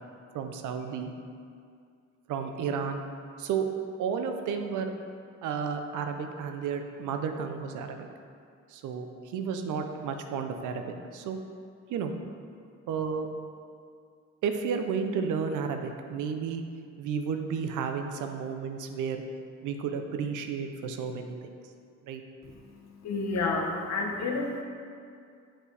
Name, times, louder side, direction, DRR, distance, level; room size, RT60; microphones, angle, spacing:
voice 1, 0.3-1.1 2.3-3.0 3.4-3.7 4.0-4.9 5.4-8.1 8.7-9.1 9.3-11.4 11.9-12.1 12.9-13.3 14.4-16.6 17.0-19.2 19.6-21.3 22.0-22.2, right 6 dB, 80° right, 6 dB, 0.6 m, -32 dB
voice 2, 23.0-24.6, left 3 dB, 60° left, 1 dB, 0.9 m, -30 dB
7.2 x 4.4 x 3.4 m, 2.3 s
cardioid pair, 90°, 30 cm